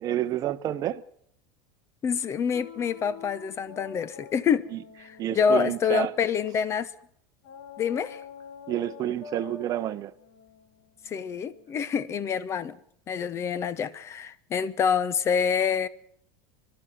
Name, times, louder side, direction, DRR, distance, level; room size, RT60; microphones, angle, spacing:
voice 1, 0.0-1.0 4.7-4.8 5.2-6.1 8.7-10.1, right 12 dB, 30° right, 0.9 m, -29 dB
voice 2, 2.0-4.7 5.0-6.9 7.8-8.2 11.1-12.8 13.1-15.9, left 7 dB, 20° left, 0.9 m, -27 dB
sound 1, 2.5-6.7 7.4-12.2, left 7 dB, 50° left, 2.8 m, -47 dB
28.0 x 12.5 x 8.0 m
supercardioid pair, 160°, 12 cm